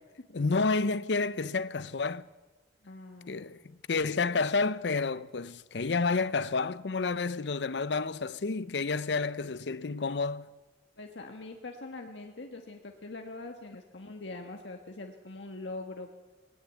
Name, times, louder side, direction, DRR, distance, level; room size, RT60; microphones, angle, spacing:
voice 1, 0.3-2.3 3.3-10.5, left 4 dB, 70° left, 0.7 m, -30 dB
voice 2, 2.8-3.6 11.0-16.1, left 2 dB, 90° left, 1.5 m, -43 dB
18.5 x 18.5 x 8.3 m
head